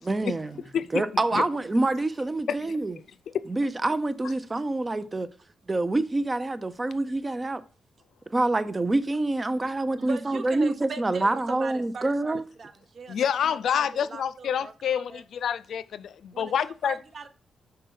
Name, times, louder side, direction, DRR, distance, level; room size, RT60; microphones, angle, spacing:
voice 1, 0.0-0.6 0.9-3.0 3.5-5.3 5.7-7.6 8.3-12.4, right 2 dB, 20° right, 0.6 m, -26 dB
voice 2, 9.7-15.2 16.3-17.3, right 5 dB, 50° right, 0.8 m, -41 dB
voice 3, 13.1-17.0, left 8 dB, 75° left, 0.4 m, -27 dB
5.6 x 4.1 x 5.5 m
cardioid pair, 110°, 0 cm